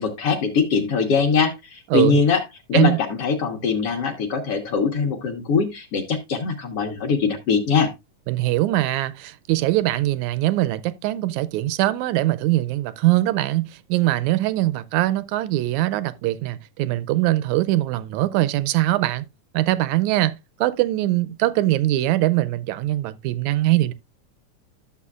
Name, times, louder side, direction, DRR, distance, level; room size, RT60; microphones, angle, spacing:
voice 1, 0.0-2.4 2.7-7.9, left 5 dB, 60° left, 1.7 m, -22 dB
voice 2, 8.3-19.2 19.5-23.9, right 16 dB, 80° right, 1.7 m, -22 dB
12.5 x 7.1 x 2.4 m
omnidirectional pair, 3.8 m